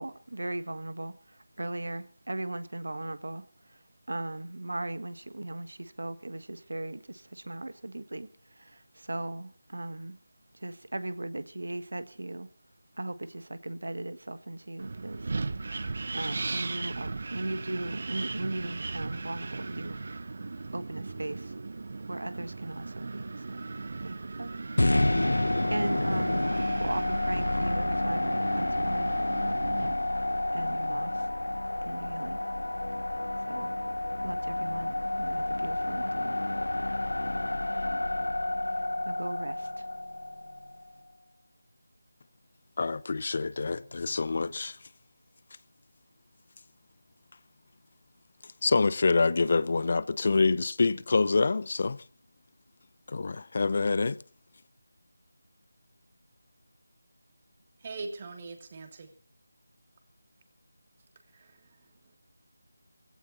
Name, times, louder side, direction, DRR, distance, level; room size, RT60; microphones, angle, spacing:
voice 1, 0.0-10.2 10.5-12.5 13.0-15.3 15.6-15.8 16.1-20.3 20.7-21.5 22.1-23.7 24.0-24.5 25.1-26.5 26.8-29.1 30.5-31.3 31.8-32.4 33.4-33.7 34.2-36.4 38.6-39.9 40.4-40.7, right 2 dB, 75° right, 1.5 m, -38 dB
Wind, 14.8-29.9, right 3 dB, 50° right, 1.0 m, -37 dB
sound 1, 24.8-40.9, left 1 dB, 85° left, 0.7 m, -29 dB
voice 2, 42.8-44.8 48.6-52.0 53.1-54.2, left 4 dB, 45° left, 0.7 m, -26 dB
voice 3, 57.8-59.1 61.3-61.7, right 3 dB, 30° right, 2.8 m, -41 dB
19.0 x 16.5 x 4.2 m
figure-of-eight pair, 165°, 0 cm